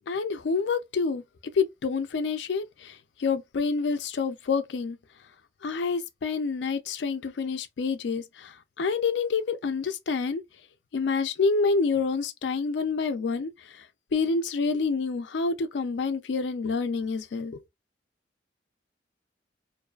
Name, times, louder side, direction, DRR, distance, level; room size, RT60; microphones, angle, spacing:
voice 1, 0.1-1.2 1.5-5.0 5.6-10.4 10.9-13.9 14.1-17.6, left 4 dB, 85° left, 0.4 m, -28 dB
2.5 x 2.3 x 2.3 m
head